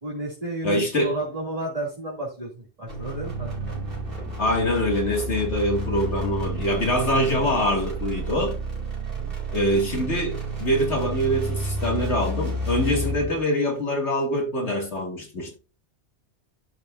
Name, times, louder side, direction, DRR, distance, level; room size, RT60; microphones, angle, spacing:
voice 1, 0.0-3.5 9.1-9.3, right 2 dB, 30° right, 2.9 m, -32 dB
voice 2, 0.6-1.1 4.4-8.6 9.5-15.5, equal, 75° left, 2.7 m, -24 dB
sound 1, 2.9-13.4, right 2 dB, 50° right, 2.8 m, -31 dB
sound 2, 3.4-8.4, right 1 dB, 10° left, 2.8 m, -42 dB
12.5 x 5.3 x 2.7 m
omnidirectional pair, 1.2 m